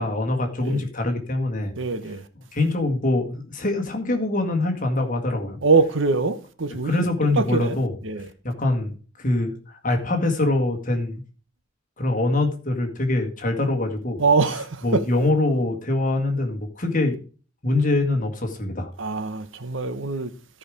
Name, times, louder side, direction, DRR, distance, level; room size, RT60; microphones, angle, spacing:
voice 1, 0.0-1.7 2.5-5.6 6.8-8.0 8.4-11.2 12.0-14.2 14.8-17.2 17.6-18.9, left 2 dB, 40° left, 1.9 m, -24 dB
voice 2, 1.8-2.3 5.6-6.9 7.4-7.8 8.0-8.3 14.2-15.0 19.0-20.3, right 4 dB, 65° right, 1.0 m, -23 dB
14.0 x 5.0 x 5.0 m
head